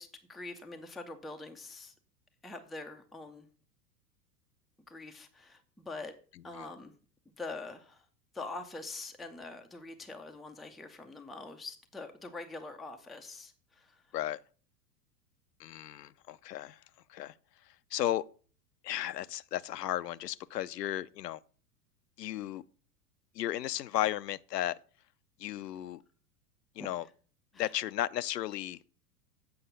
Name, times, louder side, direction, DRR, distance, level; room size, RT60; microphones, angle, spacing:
voice 1, 0.0-1.9 2.4-3.5 4.9-6.1 6.4-6.9 7.4-8.1 8.3-14.0 26.8-26.9 27.5-27.7, left 3 dB, ahead, 0.4 m, -44 dB
voice 2, 15.6-16.8 17.1-17.3 17.9-18.2 18.8-21.4 22.2-22.6 23.4-24.8 25.4-26.0 26.8-27.1 27.6-28.8, left 13 dB, 75° left, 0.6 m, -34 dB
7.9 x 5.5 x 6.7 m
figure-of-eight pair, 95°, 49 cm